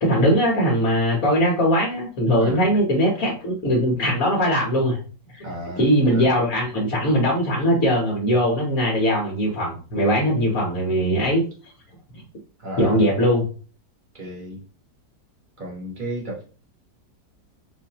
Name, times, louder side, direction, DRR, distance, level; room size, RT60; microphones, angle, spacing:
voice 1, 0.0-5.0 5.3-5.4 5.8-11.4 12.1-12.2 12.8-13.5, equal, 55° left, 1.4 m, -20 dB
voice 2, 2.4-2.8 5.4-6.3 12.6-13.1 14.1-14.6 15.6-16.4, equal, 30° right, 1.2 m, -34 dB
4.3 x 2.6 x 2.9 m
omnidirectional pair, 1.8 m